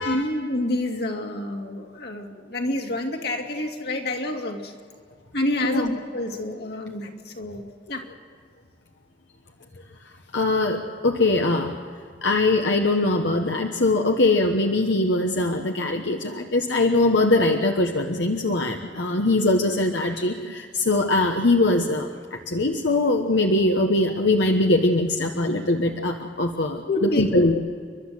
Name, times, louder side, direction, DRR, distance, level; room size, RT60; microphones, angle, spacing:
voice 1, 0.0-4.7 5.3-8.0 26.9-27.4, left 1 dB, 65° left, 3 dB, 2.5 m, -28 dB
voice 2, 10.3-11.7 12.2-27.6, left 2 dB, 85° left, 3 dB, 1.2 m, -22 dB
30.0 x 12.0 x 7.8 m, 2.1 s
head